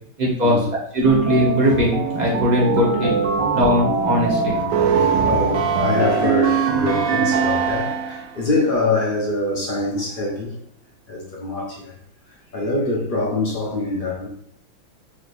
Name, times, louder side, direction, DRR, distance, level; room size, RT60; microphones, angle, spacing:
voice 1, 0.2-0.6 0.9-3.1 3.5-4.6, equal, 30° right, -4 dB, 0.9 m, -19 dB
sound 1, 1.0-8.3, right 5 dB, 70° right, 1.2 m, -21 dB
voice 2, 3.2-3.7 4.1-10.6 11.1-11.9 12.3-14.3, left 2 dB, 40° left, -3 dB, 0.7 m, -25 dB
4.8 x 3.1 x 2.6 m, 0.68 s
omnidirectional pair, 2.1 m